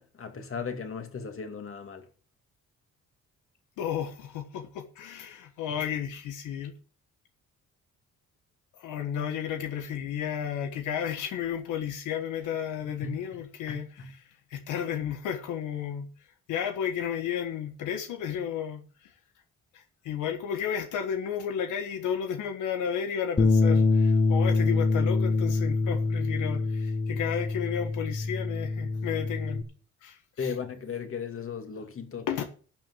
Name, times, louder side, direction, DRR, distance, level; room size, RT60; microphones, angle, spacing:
voice 1, 0.0-2.1 13.0-13.2 13.7-14.1 30.4-32.4, left 5 dB, 45° left, 2.5 m, -36 dB
voice 2, 3.8-6.7 8.8-16.1 16.5-19.1 19.7-29.7 30.0-30.5 32.3-32.4, left 8 dB, 90° left, 1.4 m, -33 dB
Bass guitar, 23.4-29.6, left 3 dB, 20° left, 1.8 m, -25 dB
12.0 x 6.1 x 7.7 m
cardioid pair, 90°, 30 cm